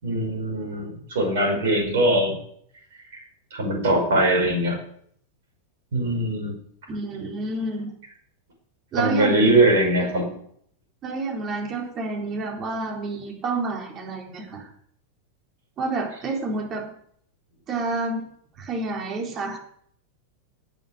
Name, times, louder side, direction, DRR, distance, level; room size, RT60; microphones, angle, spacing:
voice 1, 0.0-2.4 3.5-4.8 5.9-6.5 9.0-10.3, right 1 dB, 60° right, 1 dB, 5.5 m, -21 dB
voice 2, 6.9-7.9 8.9-9.6 11.0-14.7 15.8-16.9 17.7-18.2 18.6-19.6, right 3 dB, 30° right, 2 dB, 4.0 m, -29 dB
12.0 x 9.3 x 9.4 m, 0.66 s
figure-of-eight pair, 90°, 0 cm